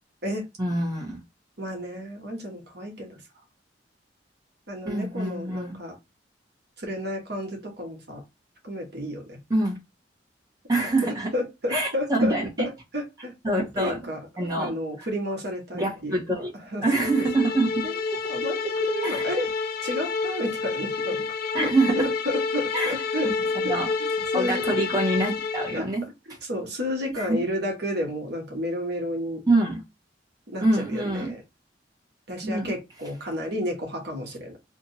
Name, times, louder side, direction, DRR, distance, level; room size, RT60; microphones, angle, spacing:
voice 1, 0.6-1.2 4.8-5.8 9.5-9.8 10.7-11.3 11.7-12.7 13.4-14.0 14.4-14.7 15.0-15.1 15.7-16.5 16.8-17.9 19.0-19.3 21.5-22.1 22.7-22.9 23.6-23.9 24.3-26.0 27.2-27.4 29.5-29.8 30.6-31.3 32.4-32.7, right 2 dB, 20° right, -3 dB, 1.1 m, -25 dB
voice 2, 1.6-3.2 4.7-5.9 6.8-8.2 8.6-9.4 10.8-10.9 11.3-14.2 14.6-16.2 16.7-16.8 17.8-18.0 18.3-19.5 19.8-21.2 21.6-23.3 23.6-24.1 24.3-24.6 25.7-25.8 26.4-29.4 30.5-31.4 32.3-34.6, equal, 60° right, 1 dB, 1.1 m, -31 dB
sound 1, 17.0-25.8, left 4 dB, 55° left, 0.3 m, -29 dB
2.7 x 2.5 x 4.1 m, 0.23 s
head